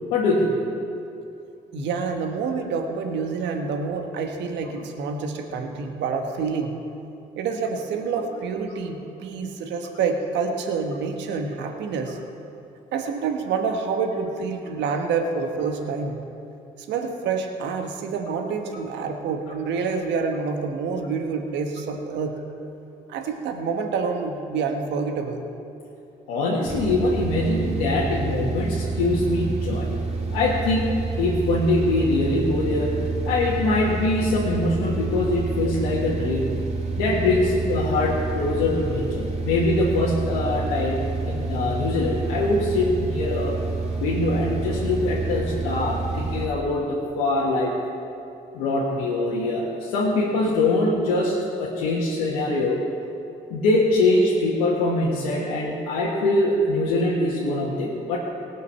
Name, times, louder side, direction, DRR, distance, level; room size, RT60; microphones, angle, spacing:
voice 1, 0.1-0.6 26.3-29.9 30.3-30.9 31.2-32.9 33.2-36.5 37.0-41.0 41.3-43.6 44.0-47.7 48.5-52.8 53.5-58.2, left 2 dB, 85° left, -5 dB, 1.5 m, -23 dB
voice 2, 1.7-6.8 7.4-12.2 12.9-16.2 16.8-22.4 23.1-25.5, right 5 dB, 75° right, 4 dB, 1.2 m, -27 dB
sound 1, 26.6-46.5, right 3 dB, 35° right, 2.2 m, -28 dB
18.5 x 6.5 x 5.5 m, 2.7 s
hypercardioid pair, 55°, 18 cm